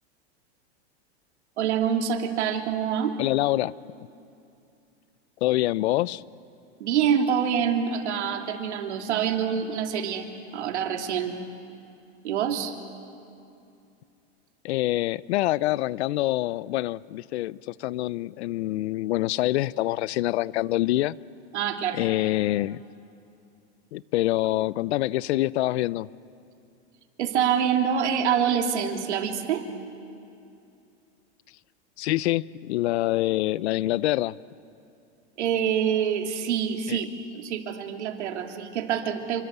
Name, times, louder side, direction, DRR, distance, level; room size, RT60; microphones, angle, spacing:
voice 1, 1.6-3.2 6.8-11.3 12.2-12.7 21.5-22.0 27.2-29.7 35.4-39.4, right 8 dB, 85° right, 2.8 m, -26 dB
voice 2, 3.2-3.7 5.4-6.2 14.6-21.2 21.9-22.8 23.9-26.1 32.0-34.4 36.9-37.0, left 16 dB, 75° left, 0.7 m, -25 dB
27.5 x 24.5 x 8.2 m
supercardioid pair, 145°, 33 cm